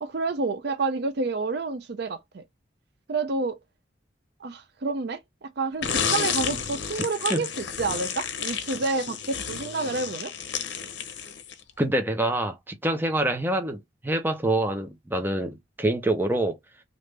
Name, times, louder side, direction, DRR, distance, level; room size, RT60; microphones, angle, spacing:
voice 1, 0.0-2.4 3.1-3.6 4.4-10.3, right 3 dB, 60° right, 0.5 m, -29 dB
sound 1, 5.8-11.7, left 7 dB, 75° left, 0.8 m, -31 dB
voice 2, 11.8-16.6, right 1 dB, 10° right, 0.7 m, -26 dB
3.3 x 2.6 x 3.2 m
head